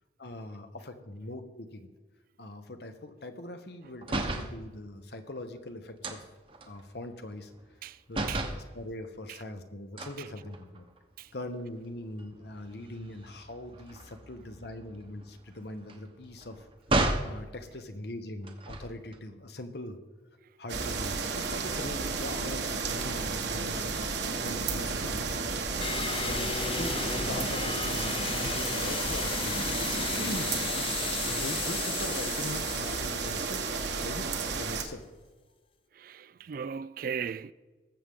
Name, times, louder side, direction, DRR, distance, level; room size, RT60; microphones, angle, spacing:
voice 1, 0.2-1.9 2.4-6.2 6.7-7.5 8.1-10.9 11.3-16.7 17.2-20.0 20.6-24.0 24.4-25.4 26.2-29.7 30.1-30.5 31.2-33.7 34.0-35.0, left 1 dB, 60° left, 1.1 m, -41 dB
sound 1, 4.0-4.6 6.0-7.8 8.1-8.7 10.0-11.0 11.5-11.7 12.0-17.4 18.4-19.2, right 2 dB, 30° right, 1.0 m, -34 dB
sound 2, 20.7-34.8, right 4 dB, 70° right, 1.4 m, -32 dB
sound 3, 25.8-34.1, left 7 dB, 30° left, 0.4 m, -35 dB
voice 2, 36.0-37.5, right 7 dB, 50° right, 0.3 m, -37 dB
20.0 x 7.7 x 3.7 m
head